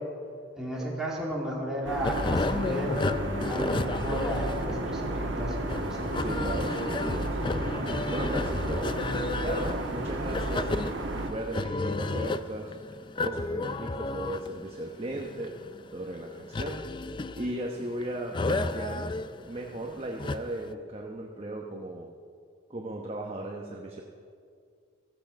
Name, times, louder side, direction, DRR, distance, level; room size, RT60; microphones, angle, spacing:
voice 1, 0.6-3.0 3.5-6.1, equal, 5° right, -5 dB, 2.9 m, -33 dB
sound 1, 1.8-11.3, right 1 dB, 75° right, 1.7 m, -32 dB
sound 2, 2.0-20.7, left 2 dB, 25° left, 0.4 m, -33 dB
voice 2, 6.2-7.7 8.1-8.9 9.4-10.7 11.3-12.8 13.2-15.5 15.9-16.8 17.4-19.1 19.5-22.1 22.7-24.0, right 1 dB, 30° right, 0 dB, 1.0 m, -36 dB
15.0 x 15.0 x 5.3 m, 2.3 s
head